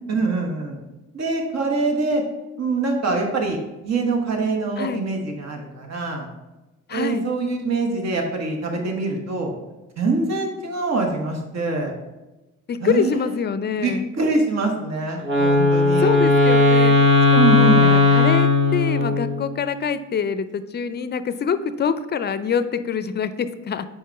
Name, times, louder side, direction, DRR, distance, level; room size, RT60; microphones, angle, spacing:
voice 1, 0.1-0.8 1.1-2.2 2.6-3.6 3.8-6.3 6.9-9.5 10.0-11.9 12.8-13.4 13.8-16.1 17.3-18.0, right 3 dB, 60° right, 2 dB, 1.2 m, -24 dB
voice 2, 6.9-7.2 12.7-14.0 16.0-16.9 17.3-23.9, left 6 dB, 35° left, 12 dB, 0.4 m, -25 dB
Wind instrument woodwind instrument, 15.2-19.4, left 3 dB, 40° right, 1.4 m, -16 dB
4.7 x 4.4 x 4.5 m, 1.0 s
supercardioid pair, 65°, 30 cm